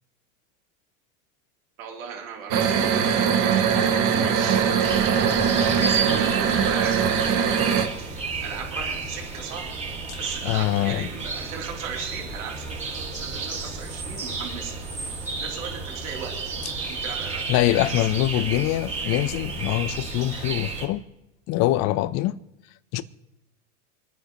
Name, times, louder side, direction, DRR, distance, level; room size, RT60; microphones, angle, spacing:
voice 1, 1.8-3.5 4.1-5.2 5.5-7.0 7.4-9.7 10.2-14.7 15.4-16.3 16.8-17.4 17.9-18.1, right 7 dB, 80° right, 3.3 m, -37 dB
sound 1, 2.5-7.9, right 7 dB, 50° right, 1.9 m, -21 dB
sound 2, 4.8-20.9, right 4 dB, 15° right, 3.7 m, -32 dB
voice 2, 10.4-11.1 17.5-21.0 21.5-22.4 22.9-23.0, left 15 dB, 40° left, 0.7 m, -24 dB
28.5 x 9.7 x 3.0 m
supercardioid pair, 125°, 41 cm